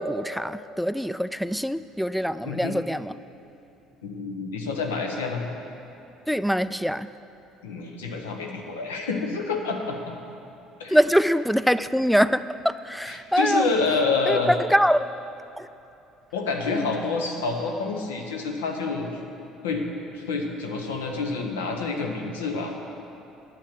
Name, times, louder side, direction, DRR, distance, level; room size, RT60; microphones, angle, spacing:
voice 1, 0.0-3.1 6.3-7.1 10.9-13.7 14.3-15.1 15.6-15.7 16.7-16.9, equal, ahead, 15 dB, 0.3 m, -23 dB
voice 2, 2.4-2.8 4.0-5.5 7.6-10.0 10.8-11.0 13.0-14.5 16.3-19.1 19.6-19.8 20.1-22.7, left 4 dB, 75° left, 2 dB, 1.0 m, -28 dB
10.0 x 7.7 x 6.9 m, 2.9 s
figure-of-eight pair, 55°, 0 cm